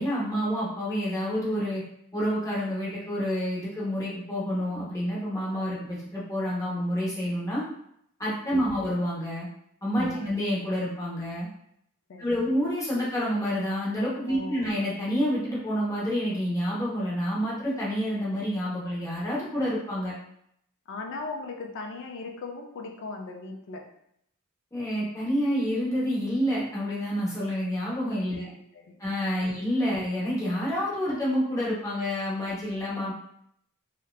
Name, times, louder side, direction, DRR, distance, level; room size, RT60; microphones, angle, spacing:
voice 1, 0.0-1.8 2.1-7.7 8.2-9.5 9.8-11.5 12.2-20.1 24.7-28.5 29.0-33.1, equal, 15° left, -7 dB, 0.8 m, -28 dB
voice 2, 10.0-10.3 12.1-12.4 14.3-14.7 20.9-23.9 28.3-29.0 29.4-29.6, left 3 dB, 60° left, 2 dB, 0.4 m, -39 dB
2.7 x 2.2 x 2.2 m, 0.72 s
head